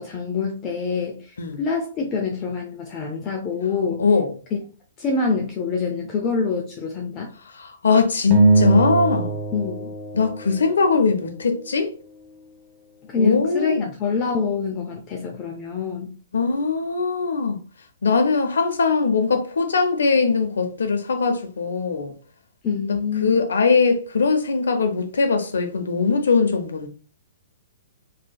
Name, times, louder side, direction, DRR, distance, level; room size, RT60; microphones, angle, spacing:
voice 1, 0.0-4.0 5.0-7.3 9.5-9.9 13.1-16.2 22.6-23.4, left 5 dB, 30° left, 0.5 m, -26 dB
voice 2, 4.0-4.4 7.5-9.4 10.1-11.9 13.2-13.9 16.3-17.6 18.0-22.1 23.2-26.9, left 4 dB, 80° left, 0.7 m, -21 dB
sound 1, 8.3-10.9, right 3 dB, 30° right, 0.8 m, -20 dB
3.3 x 2.8 x 2.2 m
hypercardioid pair, 135°, 0 cm